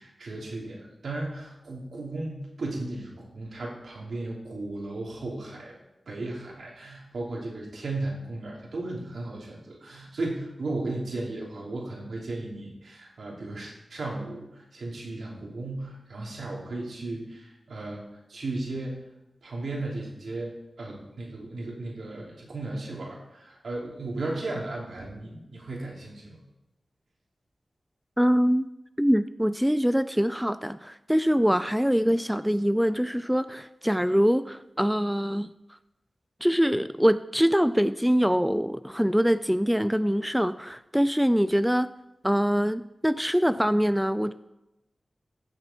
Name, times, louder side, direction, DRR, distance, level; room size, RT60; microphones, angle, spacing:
voice 1, 0.0-5.7 6.1-18.0 18.3-19.1 19.4-26.4, right 2 dB, 85° right, -3 dB, 3.0 m, -35 dB
voice 2, 28.2-28.7 29.0-35.5 36.4-41.9 42.2-44.3, equal, 5° right, 13 dB, 0.3 m, -24 dB
15.5 x 6.8 x 4.4 m, 0.93 s
wide cardioid pair, 85°, 0 cm